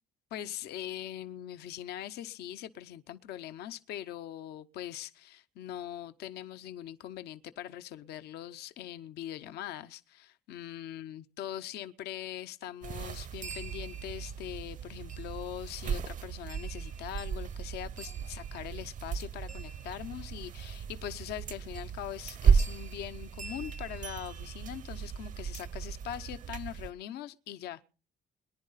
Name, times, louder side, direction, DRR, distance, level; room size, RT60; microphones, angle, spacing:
voice 1, 0.3-27.8, left 11 dB, 75° left, 0.7 m, -42 dB
sound 1, 12.8-26.9, right 7 dB, 50° right, 0.7 m, -34 dB
22.5 x 10.5 x 4.1 m
cardioid pair, 110°, 17 cm